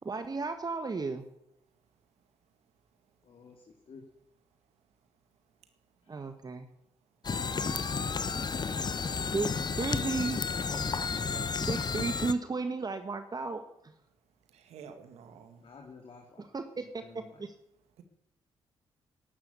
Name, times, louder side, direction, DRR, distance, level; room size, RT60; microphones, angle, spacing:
voice 1, 0.0-1.2 6.1-6.7 9.3-10.4 11.6-13.6 16.5-17.0 17.4-17.5, right 4 dB, 35° right, 8 dB, 1.5 m, -34 dB
voice 2, 3.2-4.0 6.0-6.1 15.6-17.5, left 4 dB, 55° left, 2 dB, 2.7 m, -53 dB
sound 1, 7.2-12.3, left 5 dB, 40° left, 1.1 m, -32 dB
voice 3, 14.5-15.6, right 6 dB, 80° right, 8 dB, 2.0 m, -50 dB
11.5 x 11.5 x 8.4 m, 0.81 s
supercardioid pair, 55°, 11 cm